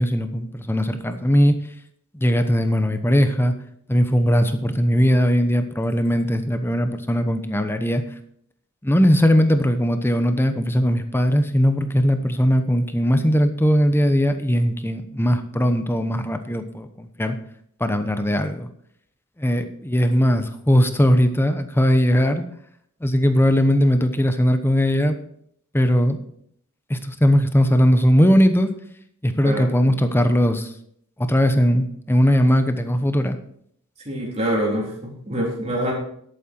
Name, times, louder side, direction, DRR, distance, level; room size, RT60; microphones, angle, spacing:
voice 1, 0.0-1.5 2.1-3.5 3.9-8.0 8.8-17.4 17.8-18.7 19.4-22.4 23.0-25.2 25.7-26.2 26.9-28.7 29.2-30.7 31.2-33.4, equal, 10° left, 9 dB, 0.9 m, -19 dB
voice 2, 29.4-29.8 34.1-35.9, equal, 30° right, -2 dB, 3.7 m, -25 dB
11.5 x 8.7 x 4.5 m, 0.66 s
head